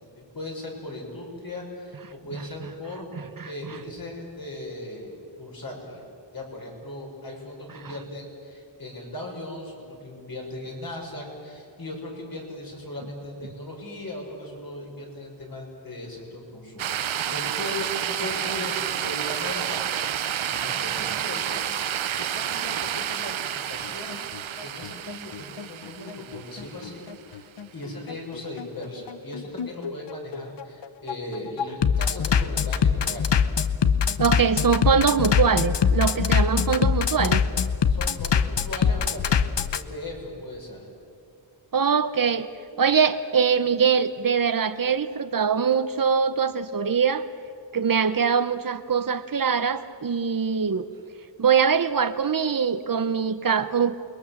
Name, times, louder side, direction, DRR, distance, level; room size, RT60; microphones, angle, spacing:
voice 1, 0.2-3.1 3.4-6.0 6.3-9.7 10.0-20.1 20.5-21.6 22.2-24.2 24.6-27.4 27.7-33.3 37.9-39.5 39.7-40.8, left 1 dB, 50° left, 0 dB, 6.0 m, -38 dB
sound 1, 16.8-27.1, right 9 dB, 90° right, 0.8 m, -30 dB
Bass drum, 23.8-39.8, left 7 dB, 65° left, 0.9 m, -23 dB
voice 2, 34.2-37.4 41.7-42.5 42.8-47.3 47.7-50.8 51.4-54.0, right 6 dB, 45° right, 12 dB, 1.0 m, -23 dB
28.5 x 22.0 x 7.4 m, 2.4 s
wide cardioid pair, 130°, 46 cm